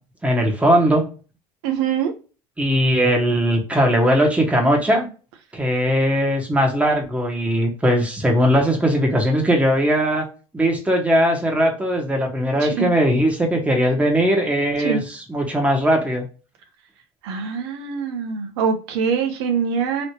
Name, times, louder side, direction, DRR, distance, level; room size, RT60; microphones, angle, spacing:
voice 1, 0.2-1.0 2.6-5.1 5.5-10.3 10.5-16.2, equal, 10° right, 1 dB, 1.3 m, -19 dB
voice 2, 1.6-2.1 12.6-12.9 14.8-15.0 17.2-20.1, right 6 dB, 85° right, 4 dB, 0.7 m, -23 dB
3.1 x 2.9 x 2.8 m, 0.35 s
supercardioid pair, 95°, 14 cm